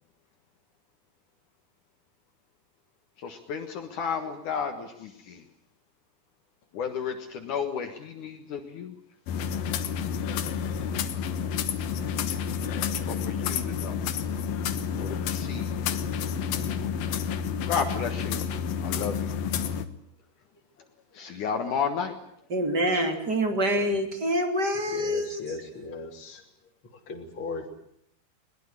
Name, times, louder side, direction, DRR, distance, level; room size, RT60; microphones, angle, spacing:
voice 1, 3.2-5.4 6.7-8.9 13.1-14.0 15.0-15.8 16.2-17.2 17.7-18.4 18.8-19.4 21.1-22.2, left 6 dB, 65° left, 5 dB, 2.9 m, -33 dB
sound 1, 9.3-19.9, left 7 dB, 80° left, 3.0 m, -30 dB
voice 2, 22.5-25.4, equal, 30° right, 5 dB, 3.3 m, -26 dB
voice 3, 24.9-26.4 26.8-27.7, left 3 dB, 35° left, 0 dB, 3.9 m, -38 dB
22.0 x 20.0 x 9.8 m, 0.71 s
omnidirectional pair, 4.0 m